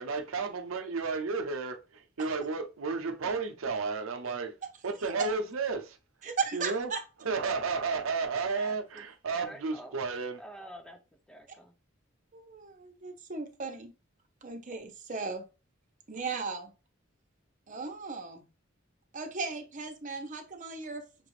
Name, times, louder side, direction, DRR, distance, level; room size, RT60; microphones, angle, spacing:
voice 1, 0.0-1.8 2.2-4.5 4.8-5.8 6.5-6.9 7.3-10.4, right 4 dB, 85° right, 0.6 m, -32 dB
voice 2, 4.6-5.3 6.2-7.0 12.3-13.9 14.4-15.4 16.1-16.7 17.7-18.4 19.1-21.1, right 4 dB, 40° right, 0.9 m, -37 dB
voice 3, 8.5-9.0 9.3-10.0 10.4-11.0 11.3-11.7, equal, 5° left, 0.5 m, -47 dB
6.0 x 2.5 x 3.2 m
head